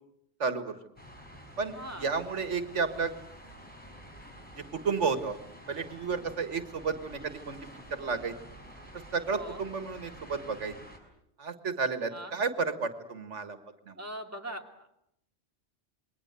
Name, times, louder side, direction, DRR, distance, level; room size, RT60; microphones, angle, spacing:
voice 1, 0.4-0.8 1.6-3.1 4.6-5.4 5.7-7.6 7.9-8.4 8.9-10.8 11.4-13.6 13.9-14.0, right 5 dB, 90° right, 10 dB, 2.0 m, -32 dB
sound 1, 1.0-11.0, equal, 10° left, 5.9 m, -49 dB
voice 2, 1.7-2.1 9.3-9.6 12.1-12.3 13.9-14.9, right 1 dB, 15° right, 3 dB, 2.5 m, -41 dB
27.5 x 21.5 x 8.1 m, 0.76 s
omnidirectional pair, 1.2 m